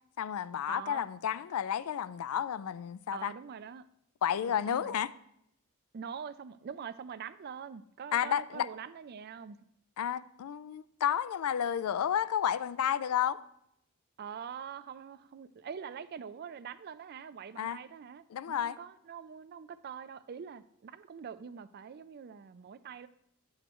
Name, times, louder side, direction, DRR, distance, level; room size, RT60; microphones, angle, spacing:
voice 1, 0.2-3.3 4.2-5.1 8.1-8.7 10.0-13.4 17.6-17.8 18.3-18.8, left 9 dB, 85° left, 0.3 m, -31 dB
voice 2, 0.7-1.0 3.1-3.8 4.5-4.9 5.9-9.6 14.2-23.1, right 7 dB, 45° right, 0.3 m, -44 dB
10.0 x 8.0 x 3.0 m
head